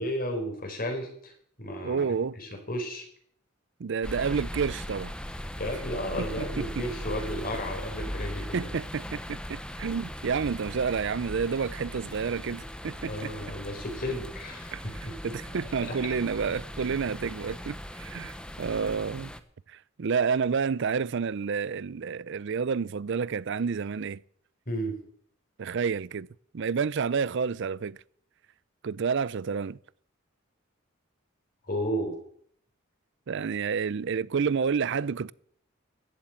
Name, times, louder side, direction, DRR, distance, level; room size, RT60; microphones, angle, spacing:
voice 1, 0.0-1.3 1.6-2.1 2.4-3.1 5.6-8.7 13.1-15.3 15.8-16.1 24.7-25.0 31.7-32.2, equal, 45° left, 4.2 m, -33 dB
voice 2, 1.8-2.4 3.8-5.1 6.4-6.9 8.5-13.3 14.7-14.8 15.2-19.3 19.7-24.2 25.6-26.3 26.5-28.0 28.8-29.8 33.3-35.3, right 5 dB, 60° right, 0.5 m, -29 dB
sound 1, 4.0-19.4, equal, 5° left, 0.8 m, -39 dB
15.0 x 7.7 x 8.9 m
head